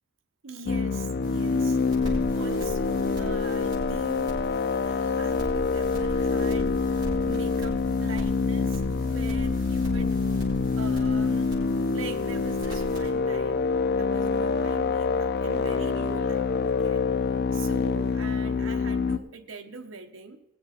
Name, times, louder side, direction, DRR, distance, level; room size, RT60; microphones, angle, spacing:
voice 1, 0.4-1.8 2.3-4.4 4.8-10.2 10.8-11.6 11.9-17.0 17.5-20.4, right 4 dB, 80° right, 4 dB, 1.0 m, -42 dB
sound 1, 0.7-19.2, left 4 dB, 55° left, 0.4 m, -26 dB
sound 2, 1.2-13.1, equal, 20° right, 5.0 m, -39 dB
20.0 x 7.6 x 4.2 m, 0.85 s
head